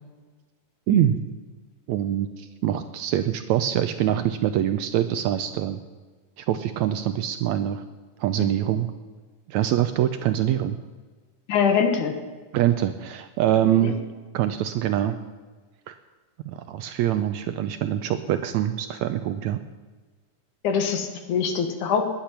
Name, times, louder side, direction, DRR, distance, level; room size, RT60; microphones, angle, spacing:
voice 1, 0.9-1.2 1.9-5.8 6.4-7.8 8.2-8.9 9.5-10.8 12.5-14.0 14.3-15.2 15.9-16.0 16.5-19.6, right 11 dB, 80° right, 10 dB, 1.7 m, -24 dB
voice 2, 11.5-12.1 13.8-13.9 20.6-22.1, left 6 dB, 70° left, 6 dB, 2.8 m, -23 dB
19.5 x 10.5 x 5.9 m, 1.3 s
omnidirectional pair, 3.8 m